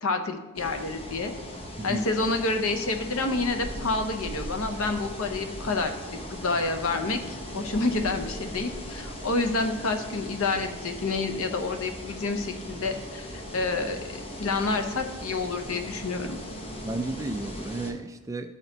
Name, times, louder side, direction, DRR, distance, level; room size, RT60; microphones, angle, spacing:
voice 1, 0.0-1.3 1.8-5.9 6.3-16.4, left 3 dB, 65° left, 6 dB, 0.8 m, -28 dB
sound 1, 0.6-17.9, equal, 25° left, 0.9 m, -39 dB
voice 2, 16.8-18.5, right 2 dB, 15° right, 7 dB, 0.3 m, -33 dB
12.0 x 4.3 x 4.0 m, 1.1 s
head